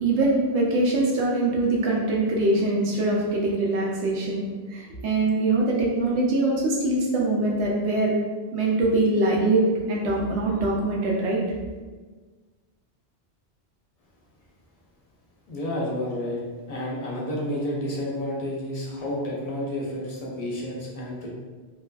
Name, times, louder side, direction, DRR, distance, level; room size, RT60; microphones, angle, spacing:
voice 1, 0.0-4.4 4.7-8.1 8.5-11.4, right 2 dB, 80° right, -3 dB, 0.9 m, -23 dB
voice 2, 15.5-16.4 16.7-21.3, left 1 dB, 45° left, -4 dB, 0.5 m, -30 dB
2.6 x 2.3 x 2.3 m, 1.4 s
omnidirectional pair, 1.1 m